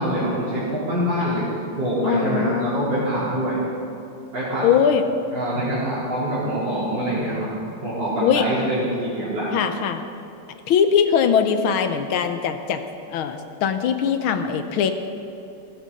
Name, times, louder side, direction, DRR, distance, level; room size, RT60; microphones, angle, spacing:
voice 1, 0.0-1.5 1.8-3.6 4.3-4.6 5.3-7.5 7.8-9.5, right 1 dB, 60° right, -12 dB, 4.3 m, -24 dB
voice 2, 2.0-2.8 4.6-5.1 8.2-8.5 9.5-10.0 10.7-12.8 13.1-14.9, left 7 dB, 90° left, 8 dB, 1.7 m, -21 dB
16.0 x 14.5 x 4.2 m, 2.7 s
omnidirectional pair, 2.2 m